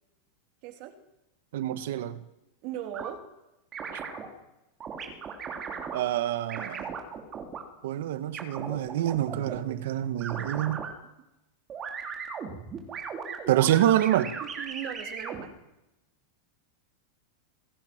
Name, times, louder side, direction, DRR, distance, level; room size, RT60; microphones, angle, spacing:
voice 1, 0.6-0.9 2.6-3.2 14.4-15.5, right 10 dB, 40° right, 3.3 m, -38 dB
voice 2, 1.5-2.2 5.9-6.9 7.8-10.8 13.5-14.3, right 12 dB, 65° right, 1.7 m, -26 dB
sound 1, 2.9-3.1 3.7-4.3 4.8-6.0 6.5-7.6 8.3-9.6 10.2-10.9 11.7-15.4, right 6 dB, 20° right, 3.4 m, -37 dB
28.0 x 20.5 x 6.2 m
supercardioid pair, 170°, 0 cm